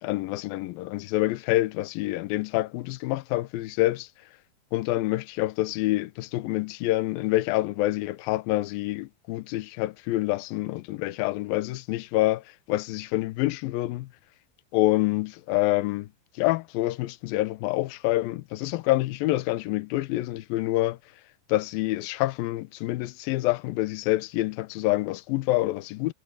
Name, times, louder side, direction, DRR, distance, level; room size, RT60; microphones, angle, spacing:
voice 1, 0.0-4.1 4.7-14.1 14.7-16.1 16.4-21.0 21.5-26.1, left 17 dB, 75° left, 2.4 m, -27 dB
omnidirectional pair, 4.7 m